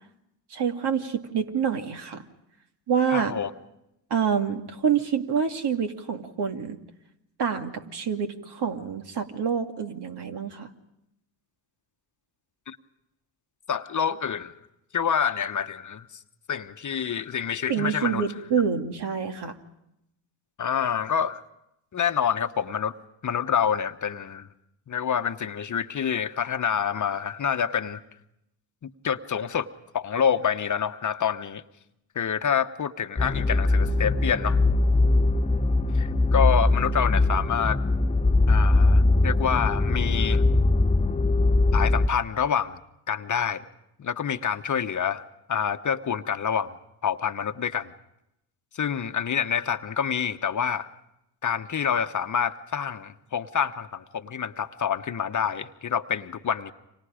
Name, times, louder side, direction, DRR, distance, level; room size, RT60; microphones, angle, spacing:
voice 1, 0.5-2.2 2.9-3.4 4.1-6.8 7.4-10.7 17.7-19.5, right 7 dB, 55° right, 5 dB, 2.4 m, -27 dB
voice 2, 3.1-3.5 12.7-12.8 13.7-14.5 14.9-16.1 16.5-18.3 20.6-21.4 21.9-22.9 23.2-24.5 24.9-28.0 28.8-29.7 29.9-31.6 32.1-34.6 35.9-37.8 38.5-40.4 41.7-42.8 43.1-43.6 44.0-46.7 47.0-47.9 48.7-50.9 51.4-56.7, left 7 dB, 40° left, 9 dB, 1.1 m, -27 dB
sound 1, 33.2-42.1, left 2 dB, 15° left, 0.9 m, -21 dB
30.0 x 25.5 x 5.1 m, 0.84 s
supercardioid pair, 65°, 47 cm